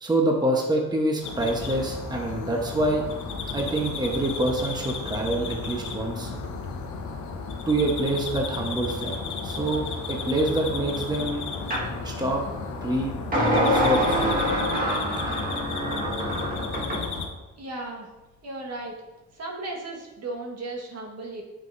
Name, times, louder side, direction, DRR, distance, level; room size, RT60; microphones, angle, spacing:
voice 1, 0.0-3.1 3.5-6.3 7.7-11.4 12.0-12.4 12.8-14.3, right 2 dB, 15° right, 0 dB, 1.1 m, -26 dB
sound 1, 1.2-17.3, left 4 dB, 75° left, 1.0 m, -33 dB
sound 2, 11.7-11.9 13.3-17.1, equal, 30° right, 1.7 m, -25 dB
voice 2, 17.6-18.1 18.4-18.9 19.4-21.4, right 2 dB, 55° right, -1 dB, 1.6 m, -35 dB
9.0 x 6.0 x 2.7 m, 1.1 s
cardioid pair, 90°, 30 cm